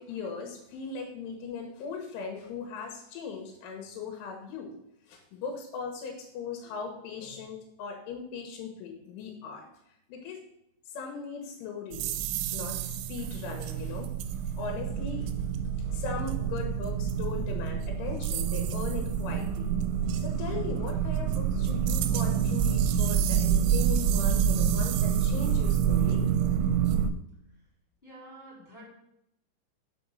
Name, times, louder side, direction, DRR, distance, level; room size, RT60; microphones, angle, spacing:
voice 1, 0.0-4.7 5.1-9.7 10.1-10.4 10.9-14.1 14.6-15.3 15.9-19.7 20.2-26.3, left 5 dB, 90° left, 2 dB, 3.7 m, -39 dB
sound 1, 11.9-27.1, right 8 dB, 90° right, 3.1 m, -27 dB
voice 2, 28.0-28.9, right 1 dB, 15° left, -8 dB, 2.3 m, -48 dB
6.9 x 5.3 x 6.3 m, 0.79 s
omnidirectional pair, 5.4 m